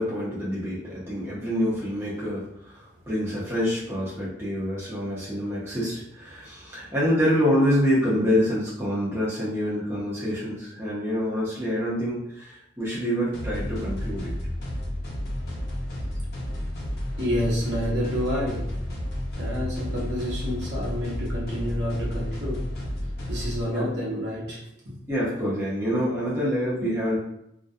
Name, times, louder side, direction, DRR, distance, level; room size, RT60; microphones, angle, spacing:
voice 1, 0.0-14.3 23.7-23.9 25.1-27.2, equal, 15° right, -9 dB, 0.6 m, -26 dB
sound 1, 13.3-23.6, equal, 55° left, 0.5 m, -31 dB
voice 2, 17.2-18.8 19.4-22.7 23.3-24.6 24.8-25.0, equal, 65° right, -6 dB, 0.9 m, -29 dB
2.3 x 2.1 x 2.5 m, 0.79 s
head